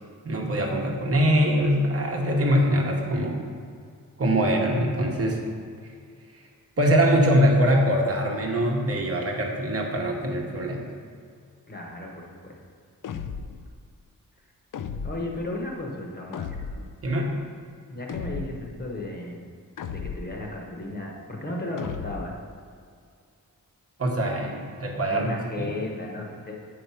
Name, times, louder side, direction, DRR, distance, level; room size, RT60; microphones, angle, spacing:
voice 1, 0.2-3.4 4.2-5.4 6.8-10.9 17.0-17.4 24.0-25.7, equal, 40° right, 0 dB, 1.1 m, -23 dB
voice 2, 11.7-12.6 15.0-16.6 17.9-19.5 19.8-22.3 25.1-26.5, left 2 dB, 25° left, -1 dB, 1.1 m, -34 dB
sound 1, 13.0-13.7 14.7-15.4 16.3-17.0 18.1-18.7 19.8-20.4 21.8-22.4, left 6 dB, 65° left, 0.5 m, -35 dB
8.4 x 4.9 x 5.7 m, 2.2 s
wide cardioid pair, 180°, 35 cm